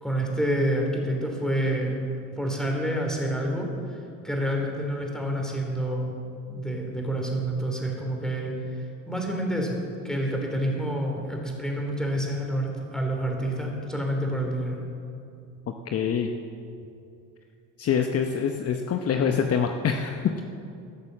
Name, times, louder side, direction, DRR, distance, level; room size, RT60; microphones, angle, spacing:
voice 1, 0.0-2.0 2.4-4.0 4.2-6.1 6.5-8.5 9.1-9.8 10.0-14.8, right 1 dB, ahead, 0 dB, 3.3 m, -28 dB
voice 2, 15.9-16.3 17.8-20.4, left 7 dB, 45° left, 5 dB, 0.9 m, -25 dB
15.0 x 6.7 x 7.5 m, 2.6 s
supercardioid pair, 85°, 34 cm